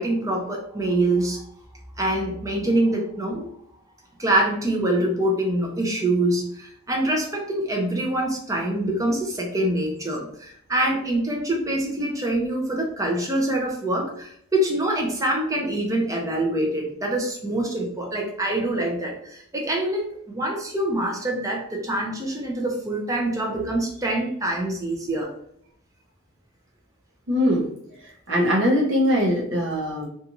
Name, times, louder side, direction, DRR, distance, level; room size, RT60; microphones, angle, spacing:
voice 1, 0.0-1.4 2.0-3.5 4.2-25.3, right 1 dB, 15° right, 0 dB, 0.5 m, -25 dB
voice 2, 27.3-27.7 28.3-30.1, equal, 55° right, -4 dB, 0.7 m, -21 dB
2.5 x 2.3 x 2.9 m, 0.68 s
head